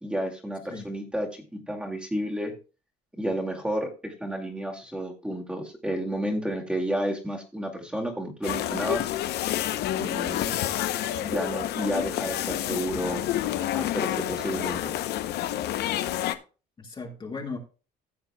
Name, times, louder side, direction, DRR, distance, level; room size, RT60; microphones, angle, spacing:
voice 1, 0.0-2.5 3.2-9.1 10.0-10.4 11.1-13.2 13.7-14.9, equal, 5° right, 0 dB, 2.2 m, -31 dB
sound 1, 8.4-16.3, left 13 dB, 75° left, 0.8 m, -29 dB
voice 2, 16.8-17.6, left 4 dB, 30° left, 1 dB, 2.1 m, -37 dB
15.5 x 7.3 x 2.3 m, 0.33 s
cardioid pair, 110°, 17 cm